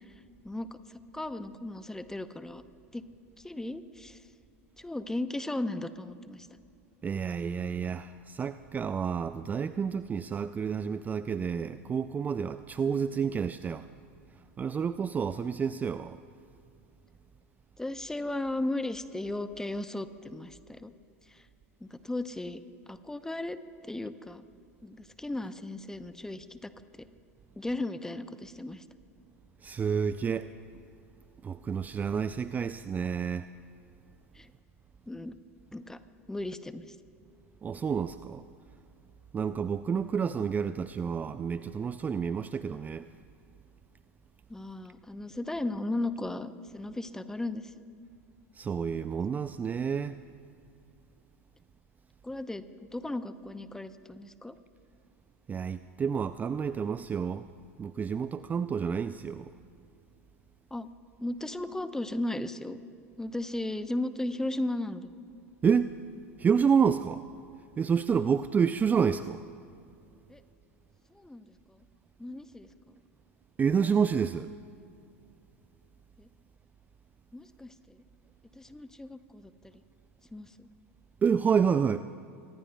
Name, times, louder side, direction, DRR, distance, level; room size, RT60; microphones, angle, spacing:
voice 1, 0.4-0.8 1.1-2.6 2.9-3.0 3.4-4.2 4.8-6.5 17.8-20.9 21.3-21.4 21.8-22.6 22.9-23.6 23.8-24.4 24.8-26.7 27.0-27.1 27.6-28.8 34.3-34.5 35.1-35.4 35.7-36.0 36.3-37.0 44.5-47.7 52.2-52.6 52.9-54.5 60.7-60.9 61.2-62.8 63.2-65.1 70.3-70.4 71.1-71.8 72.2-72.9 76.2-76.3 77.3-78.0 78.5-79.5 80.3-80.7, left 2 dB, 5° left, 12 dB, 0.7 m, -36 dB
voice 2, 7.0-13.9 14.6-16.2 29.6-30.5 31.4-33.5 37.6-38.4 39.3-43.1 48.6-50.2 55.5-57.5 57.8-59.5 65.6-65.9 66.4-67.2 67.8-69.4 73.6-74.5 81.2-82.0, right 6 dB, 20° right, 13 dB, 0.3 m, -29 dB
25.0 x 19.5 x 2.3 m, 2.5 s
hypercardioid pair, 90°, 8 cm